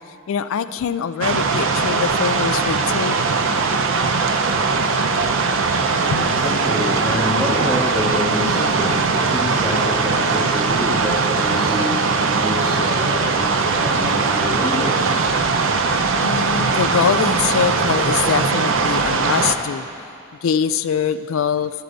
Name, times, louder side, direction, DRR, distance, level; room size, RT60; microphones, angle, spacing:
voice 1, 0.3-3.2 6.1-6.3 14.0-14.1 16.2-19.9 20.4-21.8, left 7 dB, 65° left, 12 dB, 0.3 m, -23 dB
sound 1, 1.2-19.6, right 4 dB, 60° right, 0.6 m, -20 dB
voice 2, 6.0-15.6, equal, 15° right, -8 dB, 1.4 m, -27 dB
11.0 x 11.0 x 3.9 m, 2.6 s
head